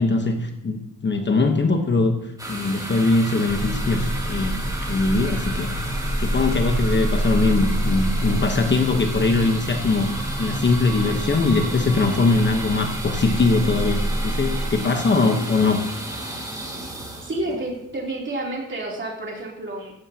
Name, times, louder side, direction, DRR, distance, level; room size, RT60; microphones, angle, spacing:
voice 1, 0.0-2.2 2.5-5.7 6.2-10.1 10.4-15.9, left 3 dB, 35° left, 5 dB, 1.0 m, -21 dB
sound 1, 2.4-18.1, right 1 dB, 10° right, 2.8 m, -33 dB
sound 2, 3.5-14.7, right 1 dB, 5° left, 2.0 m, -27 dB
voice 2, 17.2-19.9, right 1 dB, 35° right, -2 dB, 3.0 m, -30 dB
16.0 x 14.5 x 2.8 m, 0.85 s
wide cardioid pair, 180°, 33 cm